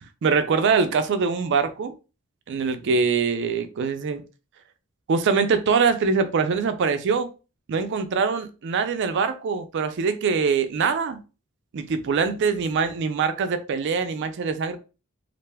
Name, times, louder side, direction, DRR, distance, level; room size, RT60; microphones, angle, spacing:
voice 1, 0.2-1.9 2.5-4.2 5.1-7.3 7.7-11.2 11.7-14.8, right 5 dB, 55° right, 0.4 m, -23 dB
2.5 x 2.2 x 3.2 m
head